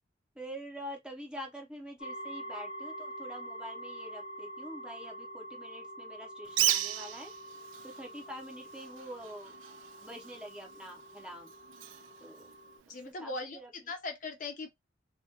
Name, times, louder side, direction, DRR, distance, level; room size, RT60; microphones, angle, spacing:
voice 1, 0.4-7.3 7.8-9.5 10.0-11.5 12.2-12.5 13.1-13.9, equal, 5° right, 0.5 m, -46 dB
sound 1, 2.0-12.8, right 1 dB, 80° left, 0.7 m, -46 dB
Bird, 6.5-13.1, right 12 dB, 90° right, 0.3 m, -37 dB
voice 2, 12.9-14.7, left 3 dB, 45° left, 0.4 m, -39 dB
2.2 x 2.1 x 2.7 m
head